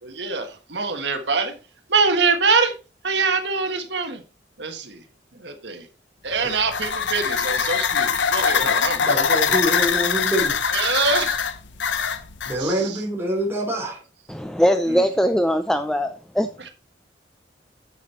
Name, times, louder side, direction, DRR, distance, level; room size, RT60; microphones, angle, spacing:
voice 1, 0.0-1.5 1.9-2.7 3.0-4.2 4.6-5.0 5.4-5.9 6.2-9.4 10.7-11.4 12.6-13.0 14.9-15.0, right 4 dB, 70° right, 1.5 m, -24 dB
sound 1, 6.3-12.6, left 6 dB, 85° left, 0.9 m, -23 dB
voice 2, 8.6-10.6 12.4-14.0, equal, 15° right, 3.3 m, -26 dB
voice 3, 14.3-16.5, equal, 5° left, 0.5 m, -21 dB
9.1 x 7.1 x 4.3 m
head